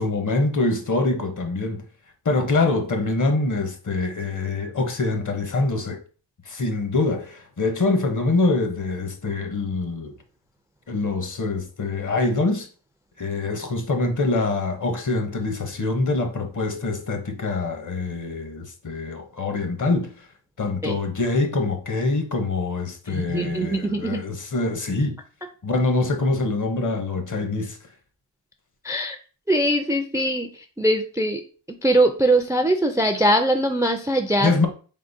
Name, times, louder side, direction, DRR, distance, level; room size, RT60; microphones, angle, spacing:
voice 1, 0.0-1.8 2.2-6.0 6.5-10.1 10.9-12.7 13.2-20.1 20.6-25.2 25.6-27.8 34.4-34.7, left 3 dB, 45° left, 0.8 m, -24 dB
voice 2, 23.1-24.2 28.8-29.2 29.5-30.5 30.8-31.4 31.8-34.6, right 1 dB, 10° right, 0.3 m, -21 dB
4.1 x 3.7 x 2.6 m
wide cardioid pair, 90°, 42 cm